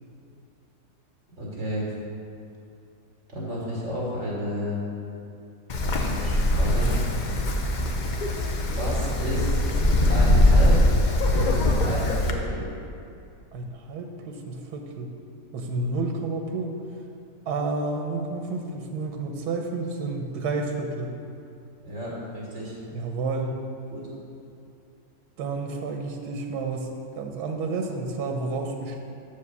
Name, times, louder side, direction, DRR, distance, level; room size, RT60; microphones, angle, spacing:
voice 1, 1.4-1.9 3.3-4.8 5.8-6.9 8.7-9.7 10.1-10.8 11.2-12.6 21.8-22.7 23.9-24.0, equal, 45° right, -5 dB, 2.2 m, -32 dB
Wind, 5.7-12.3, left 1 dB, 90° left, 0.4 m, -22 dB
voice 2, 13.5-15.1 15.5-16.8 17.5-21.1 22.9-23.6 25.4-29.0, right 3 dB, 90° right, 3 dB, 1.3 m, -30 dB
6.9 x 5.1 x 6.8 m, 2.5 s
omnidirectional pair, 1.7 m